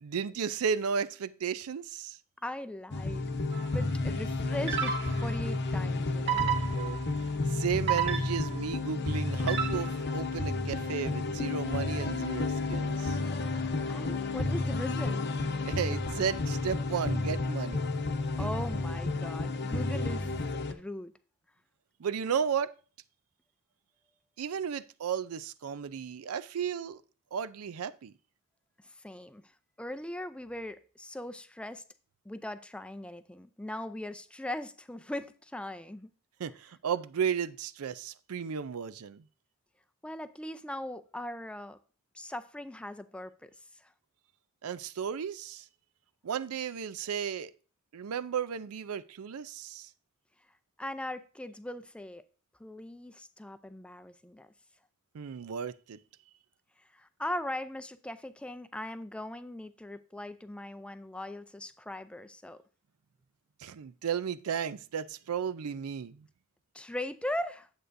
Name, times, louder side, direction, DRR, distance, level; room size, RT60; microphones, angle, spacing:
voice 1, 0.0-2.2 6.3-7.0 7.5-13.2 15.6-17.9 22.0-22.7 24.4-27.0 27.3-28.1 36.4-39.2 44.6-45.7 46.2-47.5 47.9-49.9 55.1-56.0 63.6-66.3, right 7 dB, 85° right, 0.5 m, -34 dB
voice 2, 2.4-3.3 3.7-6.5 13.9-15.2 18.4-20.3 20.7-21.1 28.8-31.8 32.2-36.1 40.0-41.8 42.1-43.9 50.8-52.2 52.6-54.5 56.9-62.6 66.7-67.7, left 1 dB, 5° left, 0.4 m, -39 dB
sound 1, 2.9-20.7, left 3 dB, 55° left, 0.8 m, -31 dB
sound 2, 3.5-3.8 4.7-5.4 6.3-7.1 7.9-8.7 9.5-10.1, right 9 dB, 55° right, 1.5 m, -32 dB
10.0 x 8.1 x 2.6 m
head